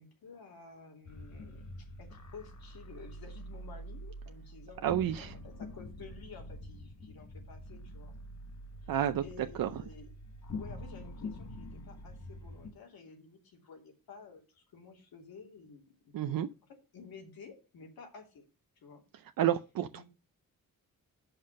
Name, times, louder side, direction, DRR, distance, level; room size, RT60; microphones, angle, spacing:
voice 1, 0.0-8.1 8.8-8.9 9.2-10.1 10.5-16.4 16.9-18.4 18.8-19.0 19.9-20.0, left 5 dB, 90° left, 2.7 m, -52 dB
sound 1, 1.1-12.7, left 1 dB, 55° left, 1.3 m, -46 dB
voice 2, 4.8-5.3 8.9-9.2 9.6-9.7 16.1-16.5 19.4-20.0, right 11 dB, 75° right, 0.6 m, -30 dB
7.6 x 5.7 x 6.3 m
wide cardioid pair, 140°, 35 cm